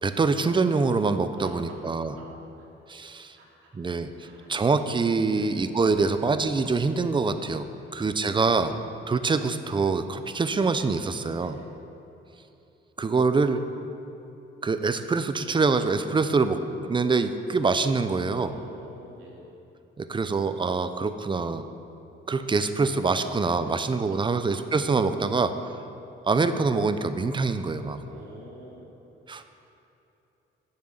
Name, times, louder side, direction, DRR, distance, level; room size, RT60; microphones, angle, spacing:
voice 1, 0.0-2.1 2.9-3.4 3.8-4.1 4.5-7.7 7.9-8.8 9.1-11.5 13.0-13.6 14.6-18.5 20.0-21.6 22.3-25.6 26.3-28.0 29.3-29.5, right 4 dB, 25° right, 10 dB, 0.6 m, -25 dB
voice 2, 1.3-2.3 2.6-2.7 3.3-3.7 4.2-4.6 5.3-5.7 7.8-8.6 11.3-11.7 18.5-19.6 23.2-23.3 23.6-24.8 25.6-26.0 27.9-29.0, right 1 dB, 85° right, -4 dB, 2.8 m, -49 dB
9.8 x 7.3 x 8.0 m, 3.0 s
cardioid pair, 90°, 20 cm